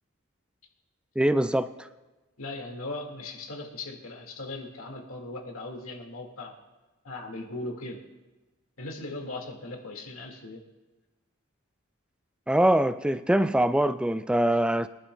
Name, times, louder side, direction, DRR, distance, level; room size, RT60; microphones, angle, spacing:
voice 1, 1.2-1.9 12.5-14.9, right 1 dB, 5° right, 12 dB, 0.3 m, -23 dB
voice 2, 2.4-6.5 7.0-8.0 8.8-10.6, left 2 dB, 90° left, 1 dB, 2.1 m, -38 dB
23.0 x 11.5 x 2.3 m, 1.1 s
head